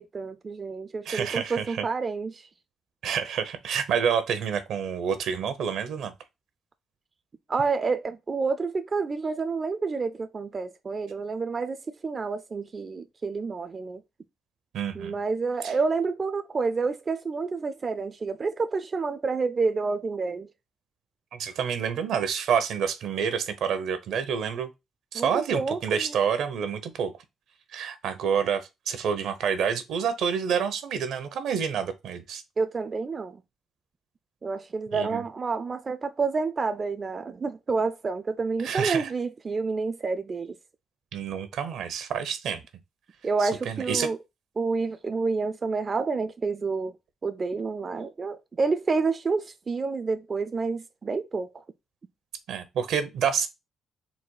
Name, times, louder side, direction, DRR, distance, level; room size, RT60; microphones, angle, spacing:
voice 1, 0.0-2.5 7.5-14.0 14.9-20.5 25.1-26.1 32.6-33.4 34.4-40.6 43.2-44.2 44.6-46.9 47.2-51.6, right 4 dB, 35° right, 0.4 m, -29 dB
voice 2, 1.1-1.8 3.0-6.1 14.7-15.2 15.6-15.7 21.3-24.7 25.1-27.1 27.7-32.4 34.9-35.2 38.6-39.1 41.1-42.6 43.4-44.1 52.5-53.5, right 7 dB, 75° right, 0.8 m, -28 dB
4.1 x 2.2 x 4.6 m
cardioid pair, 90°, 0 cm